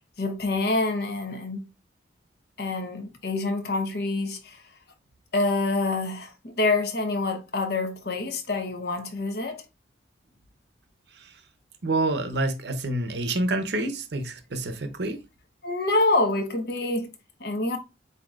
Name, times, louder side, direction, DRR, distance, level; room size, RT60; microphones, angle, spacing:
voice 1, 0.2-1.6 2.6-4.6 5.3-9.6 15.6-17.1 17.4-17.8, left 2 dB, 55° left, 0.8 m, -26 dB
voice 2, 11.8-15.2, right 2 dB, 60° right, 0.6 m, -28 dB
7.5 x 2.7 x 2.4 m
head